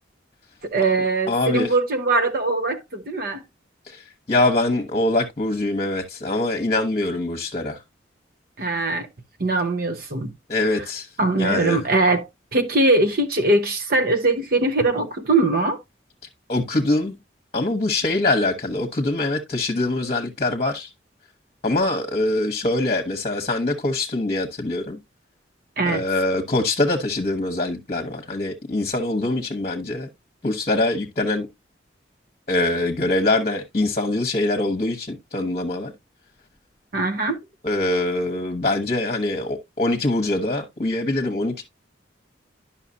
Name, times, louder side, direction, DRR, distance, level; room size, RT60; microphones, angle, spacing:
voice 1, 0.6-3.4 8.6-9.1 9.4-10.3 10.7-10.8 11.2-15.8 25.8-26.0 36.9-37.4, right 2 dB, 55° right, 0.8 m, -21 dB
voice 2, 1.3-1.7 3.9-4.0 4.3-7.8 10.5-11.1 11.4-11.8 16.5-17.2 17.5-20.9 21.6-25.0 25.9-30.1 30.4-31.5 32.5-35.9 37.6-41.6, left 2 dB, 35° left, 1.0 m, -23 dB
10.5 x 5.7 x 2.7 m
head